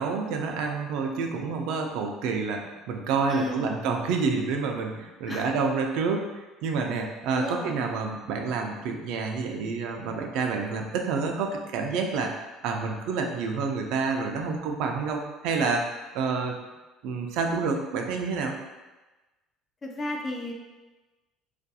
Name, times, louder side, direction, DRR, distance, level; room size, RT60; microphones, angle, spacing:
voice 1, 0.0-6.3 6.6-15.8 16.1-16.6 17.0-18.5, right 4 dB, 70° right, 2 dB, 0.3 m, -28 dB
voice 2, 3.3-3.7 5.3-5.5 7.3-7.9 19.8-20.5, left 2 dB, 25° left, 1 dB, 0.3 m, -33 dB
2.4 x 2.2 x 2.6 m, 1.1 s
cardioid pair, 130°, 0 cm